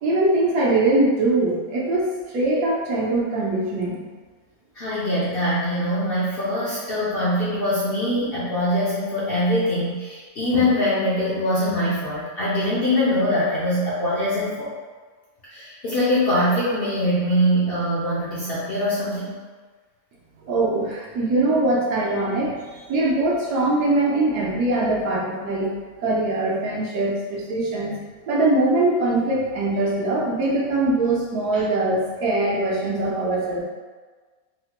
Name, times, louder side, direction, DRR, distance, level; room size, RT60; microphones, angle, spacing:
voice 1, 0.0-4.0 20.5-25.7 26.0-28.0 28.3-33.6, right 2 dB, 85° right, -4 dB, 1.3 m, -22 dB
voice 2, 4.8-14.7 15.4-19.4 31.5-31.6, left 1 dB, 60° left, -8 dB, 0.6 m, -23 dB
4.0 x 2.1 x 2.9 m, 1.4 s
omnidirectional pair, 1.6 m